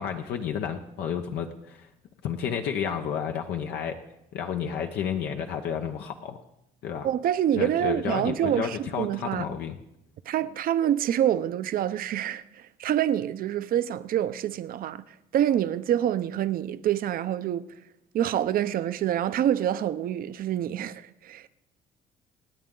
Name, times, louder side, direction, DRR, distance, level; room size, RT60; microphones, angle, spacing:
voice 1, 0.0-1.9 2.2-4.0 4.3-6.4 6.8-7.1 7.5-9.8, left 8 dB, 75° left, 1.0 m, -31 dB
voice 2, 7.0-9.5 10.3-15.0 15.3-17.6 18.1-21.5, right 11 dB, 60° right, 0.7 m, -26 dB
26.0 x 9.4 x 3.9 m
cardioid pair, 110°, 17 cm